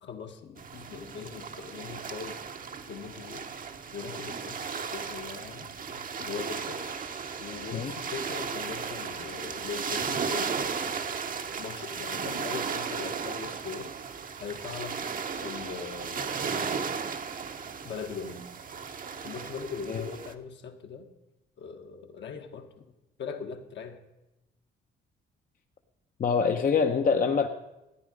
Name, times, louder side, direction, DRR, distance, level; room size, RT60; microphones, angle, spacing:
voice 1, 0.0-2.4 2.9-3.5 3.9-6.8 7.4-11.2 11.6-13.9 14.4-15.1 15.4-16.9 17.8-18.5 19.2-21.1 21.6-22.7 23.2-24.0, left 6 dB, 65° left, 4 dB, 1.4 m, -40 dB
sound 1, 0.6-20.3, right 6 dB, 45° right, 0.9 m, -35 dB
voice 2, 26.2-27.5, left 5 dB, 45° left, 4 dB, 0.8 m, -25 dB
14.0 x 9.5 x 5.2 m, 0.97 s
cardioid pair, 90°, 20 cm